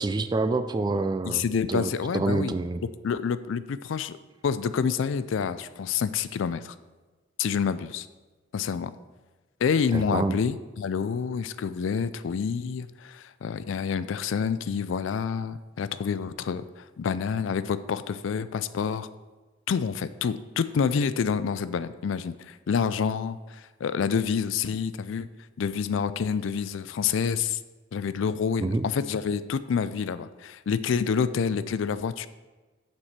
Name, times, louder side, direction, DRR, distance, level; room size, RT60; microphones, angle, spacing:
voice 1, 0.0-1.4 1.7-2.8 9.9-10.4 28.6-28.8, right 3 dB, 20° right, 11 dB, 0.3 m, -27 dB
voice 2, 1.2-2.6 3.0-4.1 4.4-6.7 7.4-8.1 8.5-8.9 9.6-19.1 19.7-25.3 25.6-27.6 27.9-32.3, left 6 dB, 70° left, 14 dB, 0.4 m, -28 dB
7.2 x 4.5 x 6.5 m, 1.2 s
head